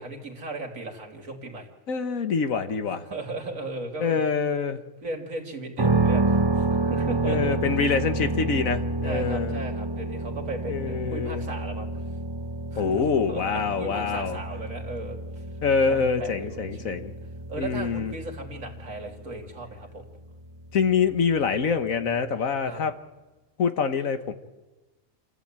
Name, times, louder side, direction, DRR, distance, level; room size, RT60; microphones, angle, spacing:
voice 1, 0.0-1.7 3.0-4.3 5.0-7.6 9.0-11.9 12.7-15.2 15.9-16.9 17.5-20.0 22.6-22.8, right 2 dB, 80° right, 2 dB, 3.4 m, -36 dB
voice 2, 1.9-3.0 4.0-4.8 7.3-9.6 10.7-11.5 12.8-14.4 15.6-17.1 17.6-18.1 20.7-22.9 23.6-24.3, left 5 dB, 90° left, 9 dB, 1.8 m, -25 dB
sound 1, 5.8-21.6, right 2 dB, 25° right, 0.7 m, -29 dB
28.0 x 14.5 x 8.9 m, 1.1 s
omnidirectional pair, 1.4 m